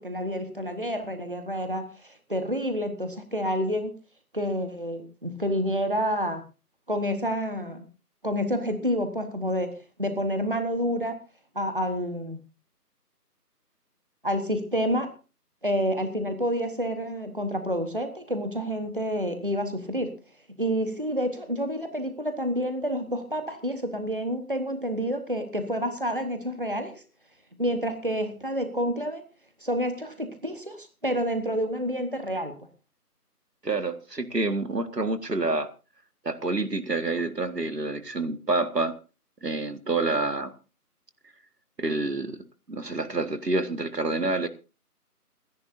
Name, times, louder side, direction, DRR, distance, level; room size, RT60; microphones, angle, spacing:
voice 1, 0.0-3.9 4.3-6.4 6.9-7.8 8.2-11.2 11.5-12.4 14.2-15.1 15.6-20.1 20.6-27.0 27.6-29.2 29.6-32.5, equal, 35° right, 8 dB, 1.2 m, -29 dB
voice 2, 33.6-35.7 36.2-39.0 39.4-40.5 41.8-42.3 42.7-44.5, right 2 dB, 80° right, 11 dB, 1.8 m, -27 dB
28.5 x 10.5 x 2.6 m, 0.32 s
figure-of-eight pair, 175°, 48 cm